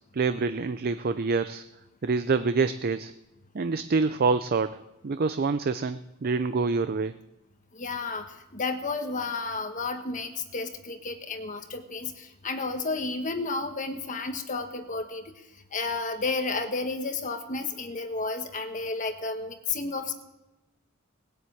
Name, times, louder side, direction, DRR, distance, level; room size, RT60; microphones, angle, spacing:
voice 1, 0.1-1.6 2.0-3.1 3.5-7.1, right 4 dB, 45° right, 11 dB, 0.5 m, -26 dB
voice 2, 7.7-20.1, left 3 dB, 35° left, 6 dB, 1.3 m, -32 dB
19.0 x 7.8 x 8.6 m, 0.98 s
head